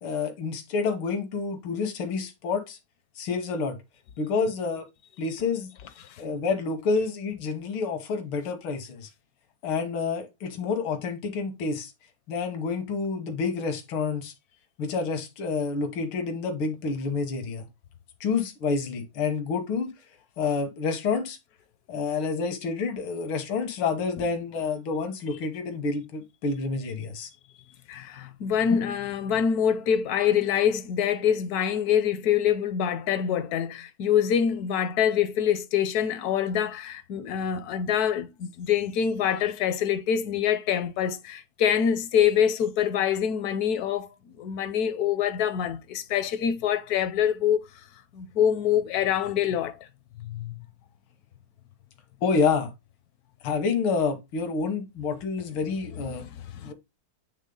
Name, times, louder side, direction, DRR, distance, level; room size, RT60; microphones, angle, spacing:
voice 1, 0.0-2.8 3.2-3.8 4.2-4.9 5.2-5.7 6.2-9.1 9.6-11.9 12.3-14.3 14.8-17.7 18.2-19.9 20.4-21.4 21.9-27.3 52.2-52.7 53.4-56.2 56.6-56.7, left 4 dB, 85° left, 2.0 m, -28 dB
voice 2, 27.9-44.1 44.4-47.6 48.1-49.8 50.2-50.6 56.1-56.7, left 8 dB, 70° left, 0.9 m, -25 dB
8.2 x 3.4 x 3.8 m
omnidirectional pair, 2.2 m